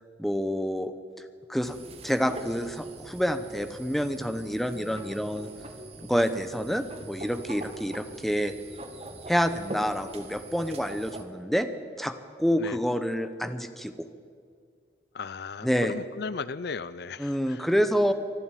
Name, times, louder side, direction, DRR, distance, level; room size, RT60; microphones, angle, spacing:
voice 1, 0.2-0.9 1.5-1.8 2.0-5.5 6.0-8.5 9.3-11.7 12.0-14.1 15.6-15.9 17.2-18.1, equal, ahead, 10 dB, 0.8 m, -28 dB
sound 1, 1.6-11.2, right 2 dB, 30° right, 1.6 m, -42 dB
voice 2, 15.1-17.7, left 5 dB, 55° left, 17 dB, 0.5 m, -36 dB
23.5 x 12.0 x 9.1 m, 2.1 s
head